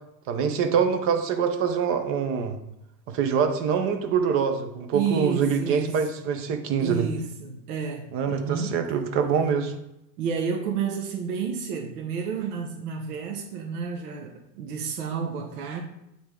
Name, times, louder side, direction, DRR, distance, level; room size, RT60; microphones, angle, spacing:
voice 1, 0.3-2.6 3.1-7.1 8.1-9.8, right 6 dB, 25° right, 0.6 m, -25 dB
voice 2, 4.9-5.9 6.8-8.8 10.2-15.8, right 6 dB, 65° right, 1.0 m, -30 dB
8.5 x 3.5 x 3.7 m
hypercardioid pair, 125°, 49 cm